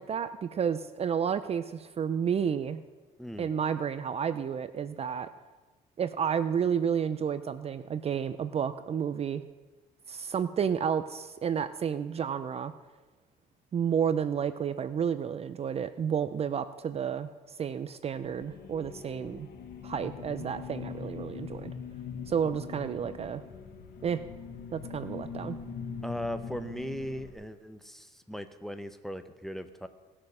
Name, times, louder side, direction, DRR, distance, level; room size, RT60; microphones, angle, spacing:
voice 1, 0.0-2.8 3.4-5.3 6.0-9.4 10.1-12.7 13.7-17.3 17.6-19.5 19.8-21.7 22.3-23.4 24.0-24.2 24.7-25.6, right 7 dB, 35° right, 12 dB, 0.5 m, -31 dB
voice 2, 3.2-3.5 26.0-29.9, equal, ahead, 9 dB, 0.7 m, -38 dB
sound 1, 18.2-27.3, left 6 dB, 70° left, 1.5 m, -42 dB
18.5 x 6.6 x 5.6 m, 1.2 s
cardioid pair, 110°, 17 cm